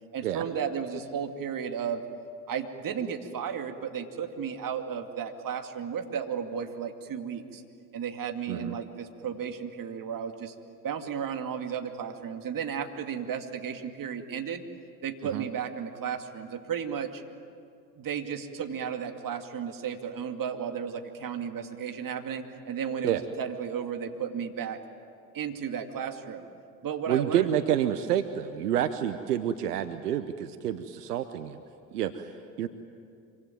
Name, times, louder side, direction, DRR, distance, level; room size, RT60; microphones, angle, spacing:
voice 1, 0.1-2.0 2.5-7.6 7.9-10.5 10.8-14.6 15.0-17.2 18.0-24.8 25.3-26.5 26.8-27.5, right 7 dB, 45° right, 5 dB, 2.5 m, -34 dB
voice 2, 27.1-31.6 31.9-32.3 32.6-32.7, right 10 dB, 85° right, 10 dB, 0.9 m, -28 dB
26.0 x 24.5 x 9.3 m, 2.4 s
hypercardioid pair, 60°, 46 cm